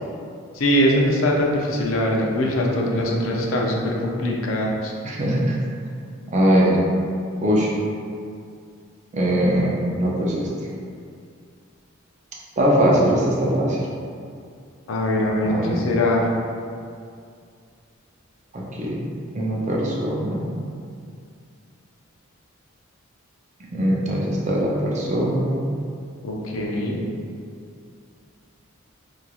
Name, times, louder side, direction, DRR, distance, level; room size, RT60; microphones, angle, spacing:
voice 1, 0.5-4.9 14.9-16.3 26.2-27.0, left 1 dB, 70° left, -1 dB, 0.4 m, -22 dB
voice 2, 5.0-5.6 6.3-6.8 7.4-7.7 9.1-10.5 12.6-13.8 15.4-15.8 18.5-19.0 19.3-20.5 23.7-25.6, equal, 35° right, -4 dB, 0.4 m, -21 dB
2.9 x 2.4 x 2.3 m, 2.3 s
head